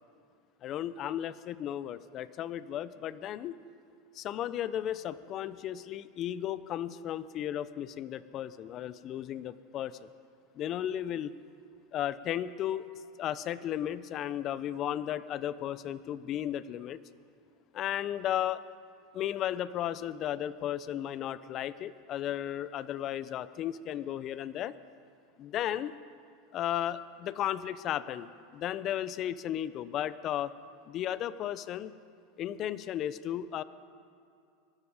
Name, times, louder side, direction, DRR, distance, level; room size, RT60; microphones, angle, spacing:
voice 1, 0.6-3.5 4.1-10.0 10.6-11.3 11.9-12.9 13.2-17.0 17.7-18.6 19.1-24.7 25.4-25.9 26.5-30.5 30.9-31.9 32.4-33.6, left 11 dB, 45° left, 16 dB, 0.6 m, -34 dB
23.0 x 12.5 x 5.0 m, 2.4 s
hypercardioid pair, 100°, 0 cm